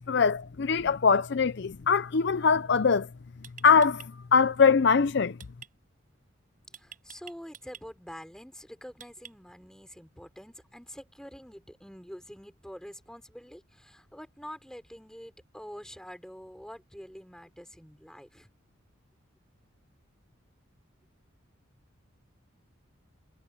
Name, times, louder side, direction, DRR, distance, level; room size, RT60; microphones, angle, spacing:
voice 1, 0.1-3.1 3.6-5.4, left 5 dB, 55° left, 0.5 m, -22 dB
sound 1, 2.8-3.0 3.4-4.1 5.4-5.7 6.7-7.8 9.0-9.6, right 8 dB, 40° right, 5.7 m, -47 dB
voice 2, 6.7-18.5, equal, 5° left, 4.5 m, -46 dB
head